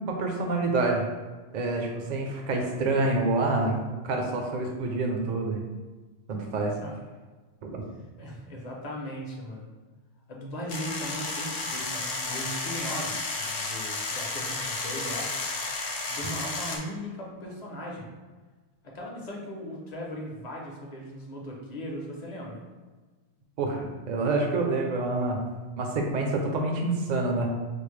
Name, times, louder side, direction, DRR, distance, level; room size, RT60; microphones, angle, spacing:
voice 1, 0.1-1.1 1.5-5.6 6.3-6.7 7.6-7.8 23.6-25.4 25.8-27.5, right 2 dB, 50° right, 2 dB, 0.6 m, -27 dB
voice 2, 8.2-9.7 10.3-15.4 16.1-18.1 18.8-22.6, equal, 45° left, -2 dB, 0.7 m, -38 dB
sound 1, 10.7-16.8, left 3 dB, 70° left, 0.9 m, -32 dB
4.5 x 2.0 x 3.1 m, 1.3 s
omnidirectional pair, 1.1 m